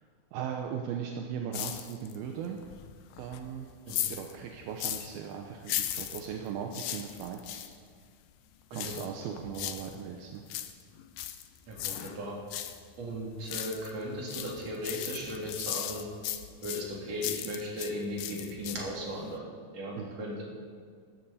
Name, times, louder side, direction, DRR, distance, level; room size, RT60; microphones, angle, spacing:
voice 1, 0.3-2.6 3.2-3.7 4.1-7.6 8.7-10.4 20.0-20.2, right 7 dB, 80° right, 2 dB, 2.7 m, -38 dB
sound 1, 1.5-2.3 2.6-5.2 5.6-7.7 8.7-10.0 10.3-12.8 13.1-14.0 14.3-17.9 18.2-19.0 19.3-19.4, left 12 dB, 75° left, 2.1 m, -37 dB
voice 2, 11.7-12.4 13.0-16.1 16.6-20.4, equal, 45° right, -3 dB, 3.9 m, -37 dB
16.5 x 13.0 x 4.2 m, 2.1 s
omnidirectional pair, 4.4 m